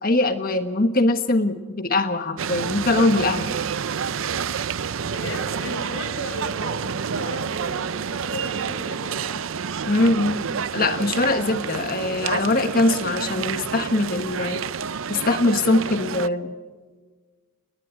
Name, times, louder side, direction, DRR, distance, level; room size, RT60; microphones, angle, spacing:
voice 1, 0.0-3.5 9.8-10.4 10.7-14.7 15.1-16.5, left 2 dB, 45° left, 8 dB, 1.3 m, -22 dB
sound 1, 2.4-16.3, right 6 dB, 75° right, 0.6 m, -29 dB
voice 2, 5.0-9.4, left 1 dB, 75° left, 4 dB, 6.8 m, -36 dB
28.5 x 21.0 x 4.6 m, 1.4 s
head